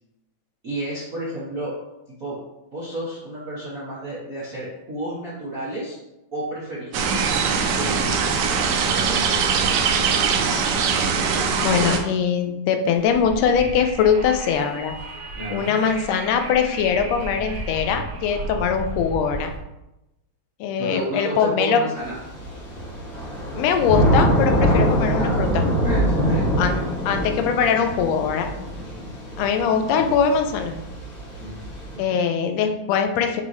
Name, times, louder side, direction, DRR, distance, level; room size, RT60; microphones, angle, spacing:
voice 1, 0.6-1.7 2.2-2.4 2.7-6.0 6.3-8.2 8.9-9.3 15.3-15.7 20.8-22.2 25.2-25.4 25.8-26.9 28.8-29.1 31.4-31.6 31.9-32.2, right 1 dB, 45° right, -8 dB, 1.1 m, -31 dB
sound 1, 6.9-12.0, right 5 dB, 80° right, 2.0 m, -21 dB
voice 2, 11.6-14.9 15.5-19.5 20.6-21.8 23.5-25.7 26.6-26.7 27.1-28.5 29.4-30.8 32.0-33.4, left 7 dB, 75° left, 5 dB, 1.8 m, -21 dB
Wind, 12.9-19.6, right 2 dB, 65° right, 2.5 m, -34 dB
Thunder / Rain, 22.0-31.9, equal, 45° left, 2.9 m, -24 dB
8.0 x 4.1 x 3.2 m, 0.94 s
omnidirectional pair, 3.3 m